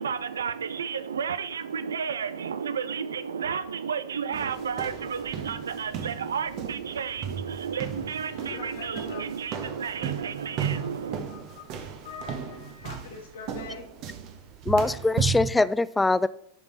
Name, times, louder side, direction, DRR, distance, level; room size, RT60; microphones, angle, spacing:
voice 1, 0.0-11.2, right 6 dB, 65° right, 14 dB, 0.6 m, -32 dB
sound 1, 4.3-15.5, right 7 dB, 40° right, 1.3 m, -35 dB
Wind instrument woodwind instrument, 7.9-12.7, equal, 75° left, 3.0 m, -58 dB
voice 2, 8.5-9.2 10.5-13.9, left 6 dB, 60° left, 4 dB, 1.2 m, -43 dB
voice 3, 14.7-16.3, left 2 dB, 10° left, 17 dB, 0.4 m, -23 dB
11.5 x 5.3 x 4.1 m, 0.75 s
figure-of-eight pair, 90°, 0 cm